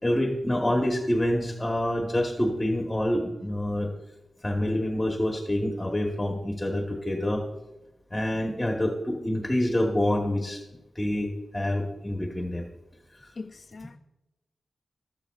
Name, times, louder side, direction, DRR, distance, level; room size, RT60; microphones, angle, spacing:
voice 1, 0.0-3.9 4.4-7.4 8.1-10.6 10.9-12.7 13.1-13.3, left 1 dB, 10° left, 1.2 m, -27 dB
voice 2, 13.4-14.0, left 3 dB, 45° left, 0.5 m, -41 dB
13.5 x 12.0 x 2.4 m
wide cardioid pair, 140°, 0 cm